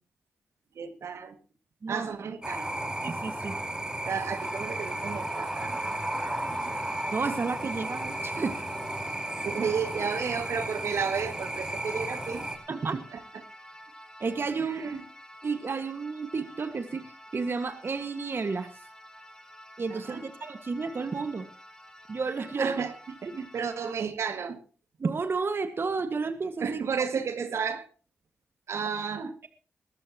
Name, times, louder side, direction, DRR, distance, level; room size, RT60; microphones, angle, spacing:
voice 1, 0.8-1.3 1.9-2.7 4.1-6.8 9.4-12.4 13.1-13.2 14.6-15.0 19.9-20.2 22.6-22.9 23.2-24.6 26.6-27.9 28.7-29.3, right 6 dB, 70° right, 8 dB, 2.1 m, -32 dB
sound 1, 2.4-12.6, right 1 dB, 15° right, 4.5 m, -34 dB
voice 2, 3.0-3.6 7.1-8.6 12.7-13.0 14.2-14.8 15.4-18.7 19.8-21.5 22.1-22.8 25.0-26.8, right 4 dB, 50° right, 8 dB, 1.8 m, -31 dB
sound 2, 4.4-23.9, equal, 15° left, 4.8 m, -49 dB
21.5 x 13.5 x 3.0 m, 0.35 s
supercardioid pair, 50°, 5 cm